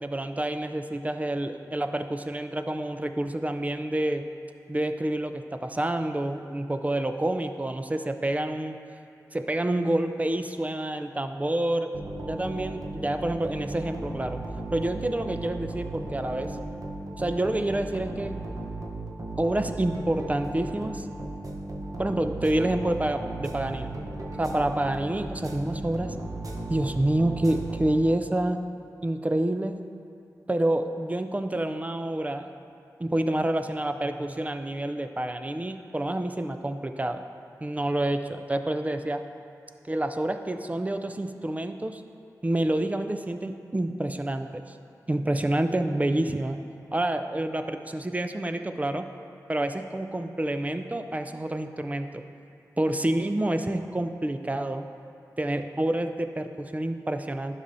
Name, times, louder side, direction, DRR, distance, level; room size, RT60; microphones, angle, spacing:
voice 1, 0.0-4.3 4.7-8.8 9.3-11.9 12.2-14.4 14.7-16.6 17.2-18.4 19.4-21.1 22.0-24.0 24.4-26.2 26.7-28.6 29.0-29.8 30.5-32.5 33.0-37.2 37.6-39.2 39.9-42.0 42.4-44.8 45.1-46.6 46.9-49.1 49.5-52.2 52.8-54.8 55.4-57.6, right 1 dB, 20° right, 7 dB, 0.4 m, -28 dB
sound 1, 11.9-28.4, right 2 dB, 55° right, 0.8 m, -36 dB
11.0 x 5.6 x 2.6 m, 2.5 s
cardioid pair, 45°, 7 cm